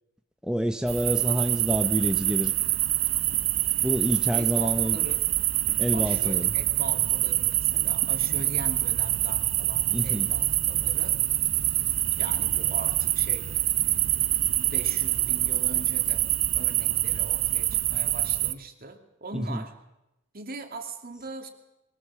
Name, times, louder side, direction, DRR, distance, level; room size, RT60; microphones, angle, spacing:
voice 1, 0.4-2.5 3.8-5.1 5.8-6.5 9.9-10.3 19.3-19.6, equal, 5° right, 6 dB, 0.7 m, -28 dB
sound 1, 0.9-18.5, right 14 dB, 65° right, 0.7 m, -25 dB
voice 2, 4.3-5.2 5.9-11.2 12.2-13.5 14.5-16.2 16.5-19.7 20.3-21.5, right 3 dB, 45° right, 5 dB, 2.5 m, -41 dB
22.0 x 19.0 x 7.4 m, 0.90 s
head